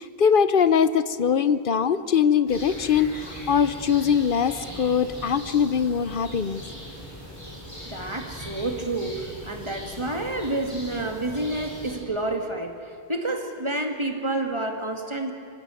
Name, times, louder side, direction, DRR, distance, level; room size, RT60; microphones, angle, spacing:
voice 1, 0.0-6.6, left 7 dB, 60° left, 14 dB, 0.9 m, -22 dB
sound 1, 2.5-12.0, equal, 30° left, 7.5 m, -40 dB
voice 2, 7.9-12.7 13.1-15.3, right 2 dB, 30° right, 4 dB, 2.1 m, -29 dB
25.5 x 16.0 x 9.0 m, 2.9 s
omnidirectional pair, 1.0 m